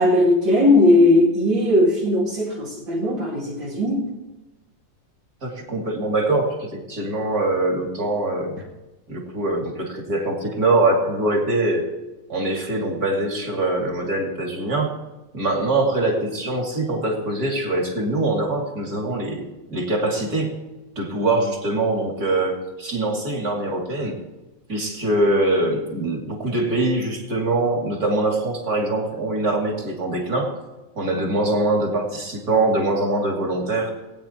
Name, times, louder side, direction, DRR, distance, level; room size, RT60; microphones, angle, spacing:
voice 1, 0.0-4.1, left 1 dB, 70° right, -7 dB, 3.2 m, -18 dB
voice 2, 5.4-8.5 9.1-11.8 12.3-14.9 15.3-20.5 20.9-24.2 24.7-30.5 30.9-33.9, right 2 dB, 50° right, 0 dB, 3.1 m, -23 dB
20.0 x 9.2 x 4.4 m, 1.1 s
omnidirectional pair, 2.1 m